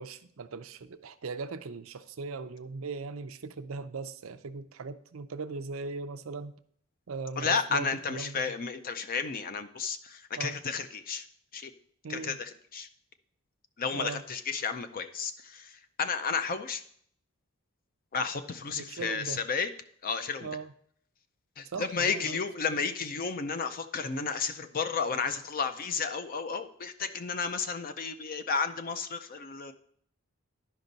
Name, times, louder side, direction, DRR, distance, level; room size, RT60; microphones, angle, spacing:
voice 1, 0.0-6.6 7.1-8.4 10.4-10.6 12.0-12.4 13.9-14.2 18.7-19.4 20.4-20.7 21.7-22.4, right 4 dB, 75° right, 11 dB, 0.5 m, -39 dB
voice 2, 7.4-11.2 11.5-11.7 12.1-12.9 13.8-16.8 18.1-19.7 20.0-20.5 21.6-29.7, left 5 dB, 45° left, 9 dB, 0.5 m, -32 dB
11.5 x 5.3 x 4.0 m, 0.64 s
head